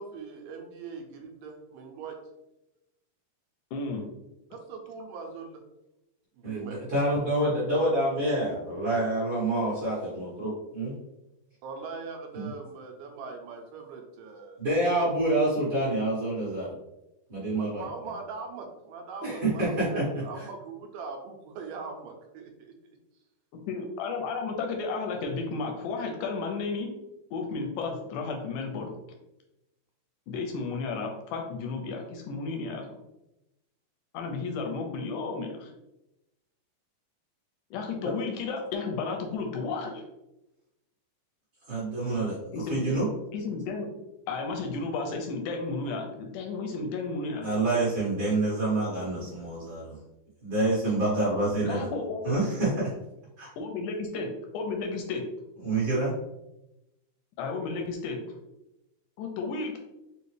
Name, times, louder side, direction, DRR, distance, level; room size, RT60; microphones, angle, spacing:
voice 1, 0.0-2.2 4.5-5.6 6.3-6.8 11.6-14.6 17.6-22.7, right 4 dB, 80° right, 3 dB, 2.1 m, -41 dB
voice 2, 3.7-4.0 23.7-26.9 27.3-28.9 30.3-32.8 34.1-35.7 37.7-40.1 42.5-42.8 43.3-43.9 44.3-47.5 51.6-52.2 53.6-54.3 54.5-55.2 57.4-58.2 59.2-59.8, left 4 dB, 80° left, 2 dB, 1.9 m, -33 dB
voice 3, 6.4-10.9 12.3-12.5 14.6-16.7 17.3-17.8 19.2-20.0 38.0-38.1 41.7-42.4 42.7-43.0 47.4-50.0 50.4-51.9 52.2-52.9 53.4-53.5 55.6-56.1, right 2 dB, 45° right, -8 dB, 1.8 m, -27 dB
5.5 x 2.4 x 3.2 m, 0.92 s
omnidirectional pair, 4.0 m